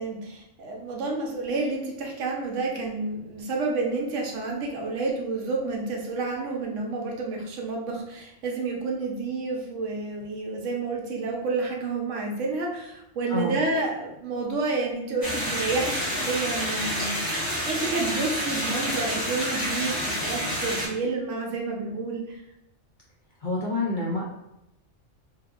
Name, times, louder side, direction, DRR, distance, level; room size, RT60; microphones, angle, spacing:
voice 1, 0.0-22.4, right 3 dB, 75° right, 0 dB, 0.9 m, -30 dB
sound 1, 15.2-20.9, equal, 20° left, 0.7 m, -28 dB
voice 2, 23.4-24.2, left 2 dB, 60° left, -5 dB, 0.5 m, -27 dB
2.8 x 2.5 x 2.3 m, 0.84 s
omnidirectional pair, 1.3 m